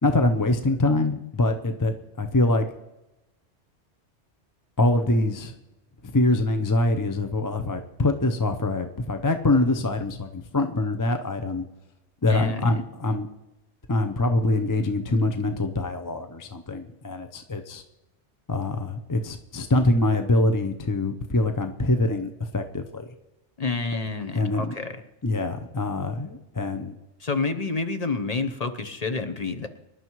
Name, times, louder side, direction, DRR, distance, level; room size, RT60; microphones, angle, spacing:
voice 1, 0.0-2.6 4.8-5.5 6.0-11.6 12.2-13.3 13.9-17.8 18.5-23.1 24.3-24.7 25.2-27.0, left 2 dB, 20° left, 6 dB, 0.6 m, -24 dB
voice 2, 12.3-12.7 23.6-25.0 27.2-29.7, left 3 dB, 35° left, 7 dB, 0.9 m, -28 dB
25.0 x 11.5 x 3.1 m, 0.95 s
omnidirectional pair, 1.2 m